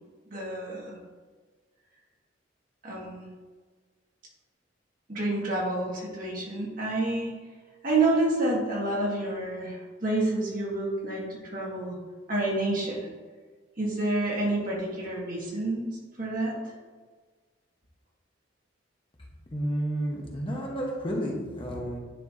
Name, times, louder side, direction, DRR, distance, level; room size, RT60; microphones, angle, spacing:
voice 1, 0.3-1.0 2.8-3.3 5.1-7.4 7.8-12.0 12.3-13.1 13.8-15.9 16.2-16.5, right 2 dB, 45° right, -4 dB, 1.8 m, -28 dB
voice 2, 19.5-22.0, equal, 30° left, -2 dB, 1.0 m, -31 dB
10.0 x 4.5 x 2.7 m, 1.4 s
head